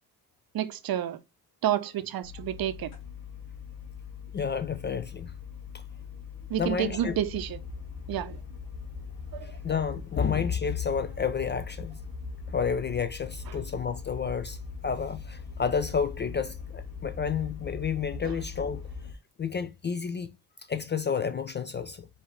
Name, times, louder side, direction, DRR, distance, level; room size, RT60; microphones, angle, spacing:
voice 1, 0.5-1.2 1.6-3.0 6.5-7.6 8.1-8.4 9.3-9.5 13.5-13.6 18.2-18.4, right 11 dB, 50° right, 0.7 m, -30 dB
sound 1, 2.2-19.1, left 5 dB, 70° left, 1.5 m, -41 dB
voice 2, 4.3-5.3 5.7-5.8 6.6-7.1 9.4-12.0 12.5-18.8 19.4-20.3 20.7-22.1, left 6 dB, 25° left, 0.4 m, -30 dB
4.7 x 2.7 x 3.2 m
hypercardioid pair, 40°, 47 cm